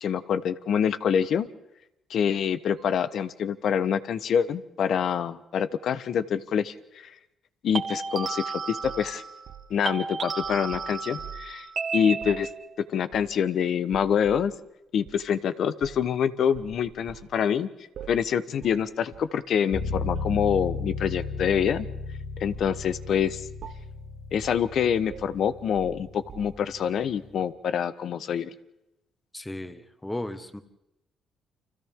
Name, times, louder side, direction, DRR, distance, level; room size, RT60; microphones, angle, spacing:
voice 1, 0.0-1.5 2.1-7.1 7.6-9.2 9.7-11.7 11.9-12.5 12.8-14.5 14.9-17.7 18.1-21.9 22.4-23.5 24.3-28.5, left 8 dB, 65° left, 13 dB, 1.0 m, -26 dB
sound 1, 2.8-3.1 7.7-9.6 9.8-12.7, right 5 dB, 50° right, 2.0 m, -33 dB
sound 2, 8.8-11.6 12.1-12.5 13.1-13.5 13.9-14.5 15.1-15.2 15.8-16.1 16.5-17.3 18.0-18.3 18.6-18.8 19.1-19.4 20.1-20.8 21.4-22.1 22.5-22.8 23.1-23.3 23.6-24.0 24.4-24.7 25.1-26.8, right 9 dB, 65° right, 0.9 m, -46 dB
sound 3, 19.7-27.4, left 4 dB, 90° left, 3.5 m, -35 dB
voice 2, 29.3-30.6, left 1 dB, 10° left, 9 dB, 1.6 m, -35 dB
30.0 x 25.5 x 3.7 m, 0.90 s
cardioid pair, 90°, 0 cm